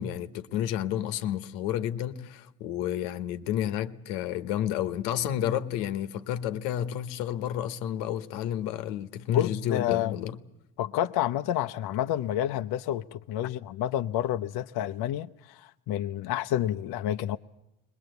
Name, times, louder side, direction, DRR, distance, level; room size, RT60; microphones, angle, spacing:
voice 1, 0.0-10.4, left 11 dB, 85° left, 1.2 m, -31 dB
voice 2, 9.3-10.1 10.8-17.4, left 12 dB, 55° left, 0.7 m, -29 dB
21.0 x 20.5 x 8.0 m
supercardioid pair, 75°, 44 cm